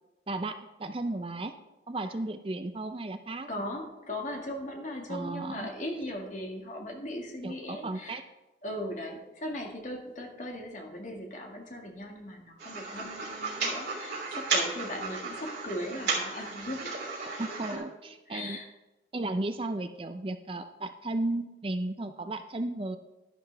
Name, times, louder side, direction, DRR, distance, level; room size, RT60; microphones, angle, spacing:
voice 1, 0.3-1.5 1.9-3.5 5.1-5.7 7.4-8.3 17.4-18.6 19.1-23.0, right 2 dB, 30° right, 8 dB, 0.5 m, -34 dB
voice 2, 3.5-8.2 8.6-16.9 17.5-17.8 18.3-18.7, left 1 dB, 45° left, 1 dB, 1.8 m, -38 dB
sound 1, 12.6-17.8, right 4 dB, 70° right, 3.2 m, -34 dB
11.5 x 11.0 x 3.4 m, 1.1 s
head